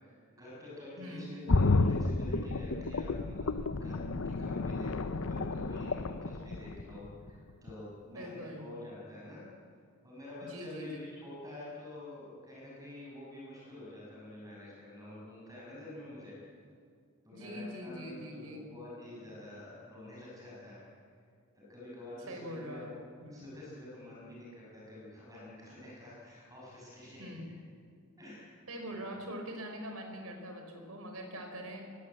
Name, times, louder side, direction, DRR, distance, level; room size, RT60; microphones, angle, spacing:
voice 1, 0.0-4.0 4.2-9.4 10.0-16.4 17.2-20.8 21.6-22.9 23.3-27.3 28.2-28.5 28.9-29.2, left 1 dB, 15° right, -5 dB, 7.2 m, -48 dB
voice 2, 1.0-1.5 8.1-8.8 10.4-11.0 17.3-18.7 22.3-22.9 23.2-23.6 27.2-27.5 28.7-32.0, equal, 80° right, 4 dB, 4.6 m, -43 dB
sound 1, 1.5-7.3 7.7-7.8, left 3 dB, 65° left, 0.8 m, -31 dB
21.5 x 20.0 x 8.7 m, 2.3 s
head